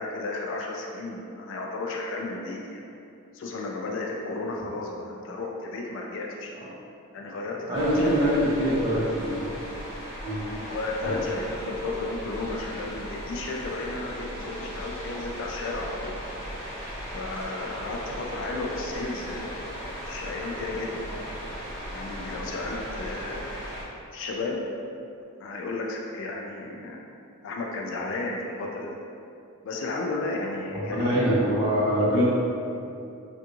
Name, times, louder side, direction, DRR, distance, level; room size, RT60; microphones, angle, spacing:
voice 1, 0.0-2.8 3.3-6.6 7.1-8.1 8.6-9.0 10.6-16.2 17.1-19.7 20.1-21.1 21.9-23.6 24.1-24.7 25.4-27.1 27.4-29.0 29.6-31.7, left 2 dB, 55° left, 0 dB, 0.3 m, -33 dB
sound 1, 7.7-23.8, equal, 40° left, 1.4 m, -37 dB
voice 2, 7.7-9.4 10.2-10.4 11.0-11.1 30.8-32.2, equal, 20° right, -11 dB, 1.0 m, -24 dB
3.4 x 2.5 x 2.8 m, 2.6 s
head